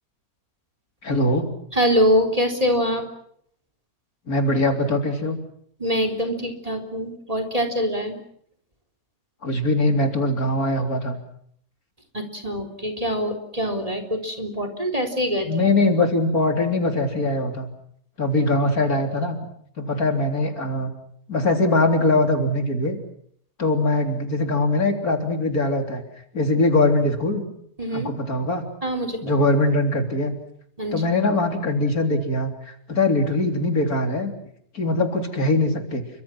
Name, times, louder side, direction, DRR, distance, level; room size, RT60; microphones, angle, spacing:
voice 1, 1.0-1.5 4.3-5.4 9.4-11.2 15.4-17.7 18.2-19.4 19.8-20.9 21.3-23.0 23.6-26.0 26.3-27.4 27.9-28.6 29.2-30.3 30.9-34.3 34.7-36.0, left 2 dB, 65° left, 5 dB, 4.0 m, -22 dB
voice 2, 1.7-3.0 5.8-8.2 12.1-15.5 27.8-28.1 28.8-29.3 30.8-31.0, equal, 20° right, 7 dB, 3.8 m, -24 dB
29.5 x 25.0 x 6.1 m, 0.66 s
omnidirectional pair, 1.7 m